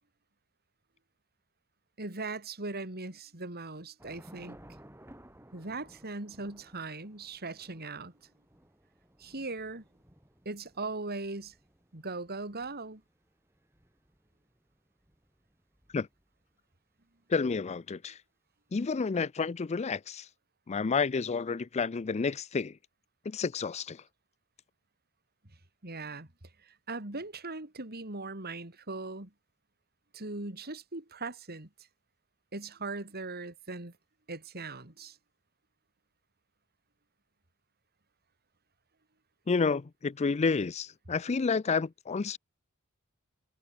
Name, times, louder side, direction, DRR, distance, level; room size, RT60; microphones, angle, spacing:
voice 1, 2.0-4.6 5.5-8.1 9.2-9.8 10.5-11.5 11.9-13.0 25.8-26.3 26.6-29.3 30.1-31.7 32.5-33.9 34.3-35.2, right 3 dB, 50° right, 3.6 m, -39 dB
Thunder / Rain, 4.0-16.5, right 1 dB, 10° right, 4.9 m, -58 dB
voice 2, 17.3-18.2 18.7-20.3 20.7-22.8 23.3-24.0 39.5-42.4, left 4 dB, 30° left, 0.4 m, -30 dB
head